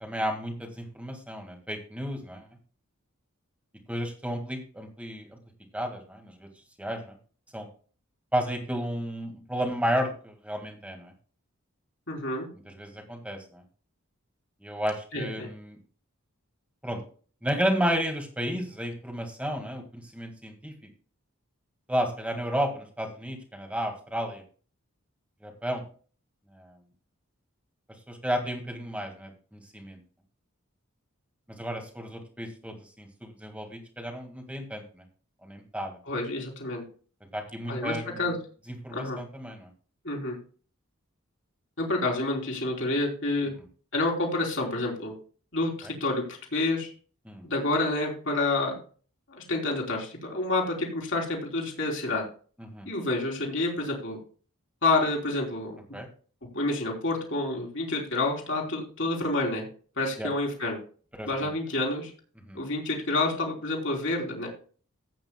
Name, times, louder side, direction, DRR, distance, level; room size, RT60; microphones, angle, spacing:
voice 1, 0.0-2.4 3.9-5.3 5.7-6.5 6.8-7.1 7.5-7.7 8.3-11.1 12.7-13.6 14.6-15.8 16.8-17.0 17.4-20.7 21.9-24.4 25.4-25.8 26.5-26.7 28.1-30.0 31.5-35.0 35.4-36.0 37.3-38.2 38.8-39.7 45.8-45.9 47.3-47.4 52.6-52.9 55.9-56.1 60.2-60.3 61.2-61.3 62.5-62.6, equal, 5° right, 3 dB, 1.8 m, -32 dB
voice 2, 12.1-12.5 15.1-15.5 36.0-36.8 37.7-38.4 38.9-39.2 40.0-40.3 41.8-43.5 43.9-45.1 45.5-46.9 47.4-48.8 49.3-52.2 52.8-54.2 54.8-55.8 56.5-59.7 60.0-60.8 61.2-62.1 62.5-64.5, left 2 dB, 55° left, -1 dB, 3.3 m, -28 dB
15.0 x 8.7 x 2.2 m, 0.41 s
head